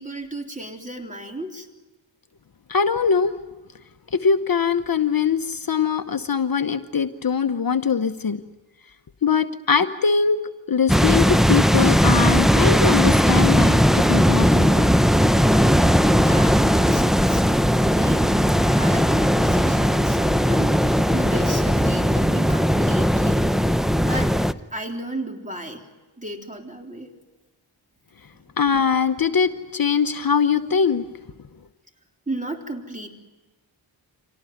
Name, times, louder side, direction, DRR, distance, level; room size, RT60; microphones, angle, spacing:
voice 1, 0.0-1.7 15.6-17.4 17.7-23.5 24.0-24.3 24.7-25.8 26.2-27.1 32.3-33.2, right 1 dB, 15° right, 4 dB, 3.6 m, -34 dB
voice 2, 2.7-3.3 4.1-8.4 9.2-10.4 10.7-13.8 14.1-14.8 28.6-31.0, left 6 dB, 50° left, 9 dB, 1.0 m, -22 dB
sound 1, 10.9-24.5, equal, ahead, 0.8 m, -18 dB
25.5 x 18.0 x 9.4 m, 1.2 s
cardioid pair, 55°, 45 cm